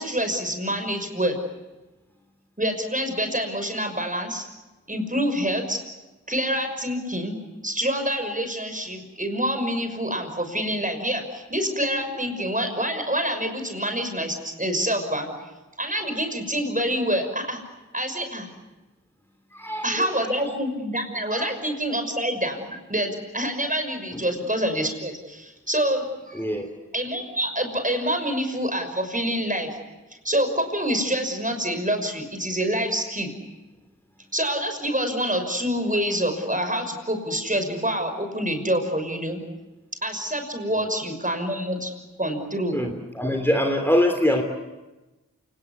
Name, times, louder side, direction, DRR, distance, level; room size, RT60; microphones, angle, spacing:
voice 1, 0.0-1.4 2.6-4.4 4.9-5.8 6.3-7.4 7.6-15.3 15.8-17.6 17.9-18.5 19.8-26.4 26.9-29.8 30.2-33.3 34.3-39.4 40.0-41.9 42.2-42.8, equal, 25° right, 6 dB, 6.1 m, -26 dB
voice 2, 19.5-20.3 21.3-21.5 24.1-24.2 26.3-26.7 40.7-40.8 42.7-44.4, left 1 dB, 5° left, 4 dB, 3.2 m, -24 dB
28.0 x 19.5 x 9.7 m, 1.1 s
wide cardioid pair, 50°, 30 cm